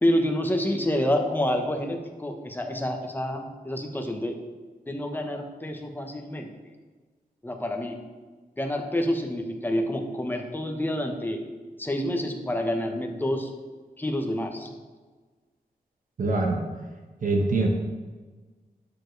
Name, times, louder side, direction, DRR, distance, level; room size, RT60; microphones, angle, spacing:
voice 1, 0.0-4.4 4.9-6.5 7.4-8.0 8.6-11.4 11.8-13.5 14.0-14.7, left 1 dB, 10° left, 3 dB, 1.0 m, -28 dB
voice 2, 16.2-16.6 17.2-17.7, right 3 dB, 60° right, 1 dB, 1.3 m, -24 dB
11.0 x 6.9 x 3.3 m, 1.4 s
wide cardioid pair, 135°, 16 cm